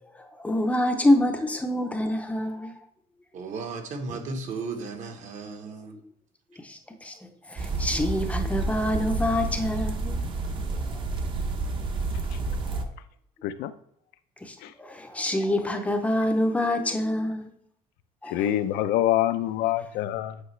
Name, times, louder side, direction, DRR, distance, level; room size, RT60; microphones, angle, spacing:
voice 1, 0.2-2.7 6.6-7.1 7.5-10.2 14.4-17.5 18.2-18.4, left 1 dB, 10° left, 0.6 m, -26 dB
voice 2, 3.3-6.0, right 4 dB, 50° right, 1.2 m, -35 dB
sound 1, 7.6-12.8, right 3 dB, 30° right, 0.8 m, -29 dB
voice 3, 18.3-20.4, left 13 dB, 75° left, 0.6 m, -25 dB
8.1 x 5.4 x 3.2 m
cardioid pair, 165°, 16 cm